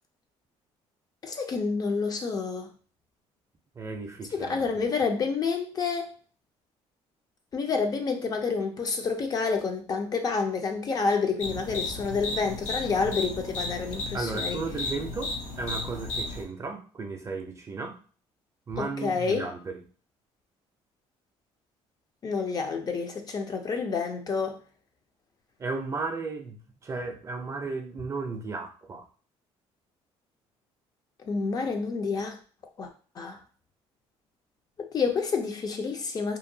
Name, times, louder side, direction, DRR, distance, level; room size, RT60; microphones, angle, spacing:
voice 1, 1.2-2.7 4.3-6.1 7.5-14.6 18.8-19.5 22.2-24.6 31.2-32.4 32.8-32.9 33.2-33.4 34.8-36.4, left 4 dB, 35° left, 5 dB, 0.4 m, -29 dB
voice 2, 3.8-4.8 14.1-18.0 18.7-19.8 25.6-29.1, right 4 dB, 25° right, 4 dB, 0.5 m, -35 dB
sound 1, 11.4-16.4, left 2 dB, 85° left, 0.6 m, -34 dB
2.8 x 2.2 x 2.6 m, 0.40 s
cardioid pair, 125°, 11 cm